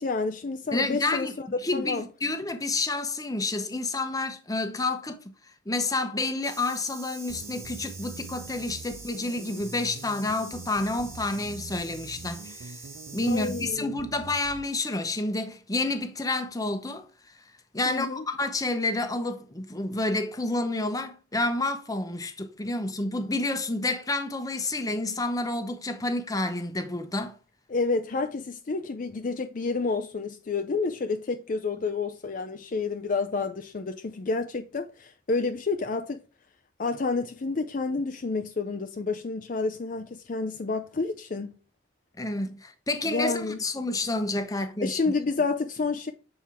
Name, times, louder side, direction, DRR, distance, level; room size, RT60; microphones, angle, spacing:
voice 1, 0.0-1.5 1.7-2.0 13.3-13.9 17.9-18.2 27.7-36.2 36.8-41.5 43.1-43.6 44.8-46.1, left 4 dB, 45° left, 0.5 m, -29 dB
voice 2, 0.7-1.3 1.6-5.2 5.7-12.7 13.1-17.0 17.7-27.4 42.2-45.1, left 2 dB, 20° left, 0.8 m, -29 dB
sound 1, 6.4-13.7, right 3 dB, 15° right, 1.3 m, -45 dB
sound 2, 7.3-14.7, right 4 dB, 90° right, 0.5 m, -44 dB
7.4 x 4.4 x 3.5 m
head